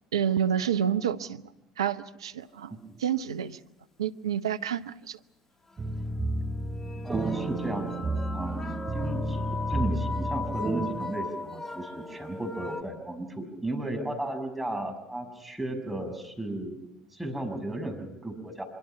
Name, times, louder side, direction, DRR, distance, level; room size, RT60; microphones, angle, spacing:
voice 1, 0.1-1.4 1.8-3.6 4.0-5.2, right 9 dB, 80° right, 11 dB, 0.8 m, -29 dB
sound 1, 4.9-5.0 5.7-5.8 6.5-12.8, left 3 dB, 15° left, 1.8 m, -38 dB
sound 2, 5.8-10.9, right 1 dB, 30° right, 5.4 m, -31 dB
voice 2, 7.0-16.8 17.1-18.6, right 1 dB, 5° right, 4 dB, 6.0 m, -35 dB
25.5 x 24.0 x 5.8 m, 0.88 s
hypercardioid pair, 65°, 3 cm